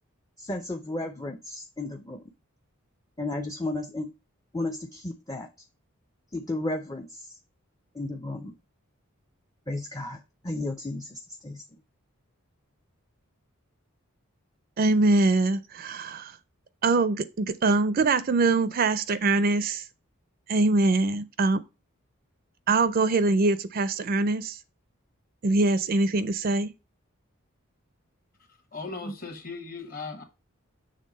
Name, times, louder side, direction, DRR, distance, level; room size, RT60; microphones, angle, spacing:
voice 1, 0.4-2.2 3.2-4.1 4.5-5.5 6.3-7.3 8.0-8.5 9.7-11.6 29.0-29.1, left 2 dB, 15° left, 0.4 m, -33 dB
voice 2, 14.8-16.3 16.8-19.8 20.5-21.6 22.7-24.6 25.4-26.7, right 3 dB, 40° right, 0.4 m, -23 dB
voice 3, 28.7-30.2, left 4 dB, 40° left, 1.2 m, -37 dB
6.5 x 3.3 x 5.2 m
head